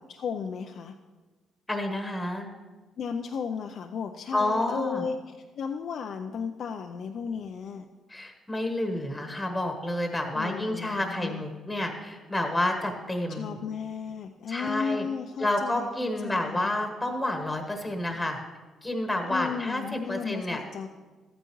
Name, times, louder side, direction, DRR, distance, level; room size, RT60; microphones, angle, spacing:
voice 1, 0.1-0.9 3.0-5.2 5.6-7.9 10.3-11.4 13.3-15.9 16.2-16.7 19.3-20.9, left 6 dB, 65° left, 5 dB, 0.4 m, -34 dB
voice 2, 1.7-2.5 4.3-5.0 8.1-13.6 14.5-15.0 15.4-18.4 18.8-20.6, left 1 dB, 10° left, 4 dB, 1.2 m, -29 dB
13.0 x 9.1 x 3.1 m, 1.3 s
cardioid pair, 90°, 0 cm